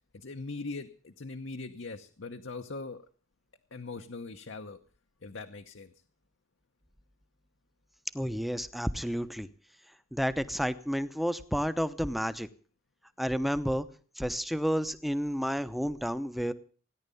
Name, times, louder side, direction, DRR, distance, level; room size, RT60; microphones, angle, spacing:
voice 1, 0.1-3.0 3.7-4.8 5.2-5.9, left 3 dB, 65° left, 6 dB, 0.9 m, -41 dB
voice 2, 8.1-9.5 10.1-12.5 13.2-13.9 14.2-16.5, equal, ahead, 13 dB, 0.8 m, -31 dB
17.5 x 10.5 x 7.0 m, 0.41 s
head